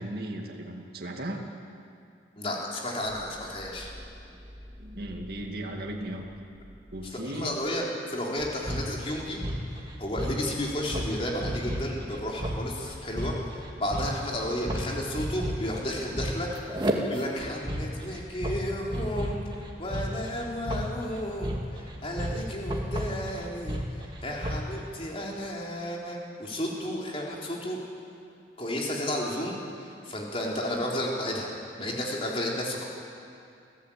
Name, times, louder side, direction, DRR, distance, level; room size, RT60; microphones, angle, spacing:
voice 1, 0.0-1.4 4.8-6.3 6.9-7.5, right 1 dB, 55° right, 0 dB, 2.4 m, -36 dB
voice 2, 2.4-3.9 7.1-9.4 10.0-16.5 16.9-27.8 28.6-31.5 31.8-32.9, left 1 dB, 30° left, -2 dB, 3.8 m, -33 dB
sound 1, 3.0-7.9, equal, ahead, 3.7 m, -49 dB
sound 2, 8.4-24.8, equal, 25° right, 2.3 m, -33 dB
27.5 x 15.5 x 8.7 m, 2.5 s
head